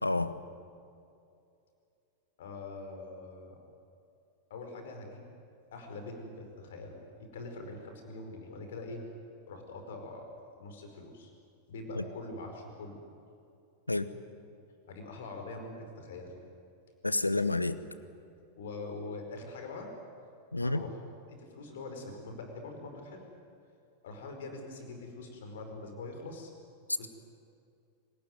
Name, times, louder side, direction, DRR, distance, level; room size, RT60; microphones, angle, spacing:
voice 1, 0.0-0.3 12.0-12.1 13.9-14.1 17.0-17.8 20.5-20.8, left 2 dB, 85° left, 14 dB, 1.1 m, -29 dB
voice 2, 2.4-3.6 4.5-5.3 5.7-9.0 9.5-10.3 10.6-11.3 11.7-13.0 14.9-16.3 18.6-19.9 20.6-21.0 21.3-23.2 24.0-26.5 26.9-27.1, left 2 dB, 60° left, 4 dB, 5.0 m, -43 dB
27.0 x 18.5 x 9.5 m, 2.5 s
figure-of-eight pair, 90°, 0 cm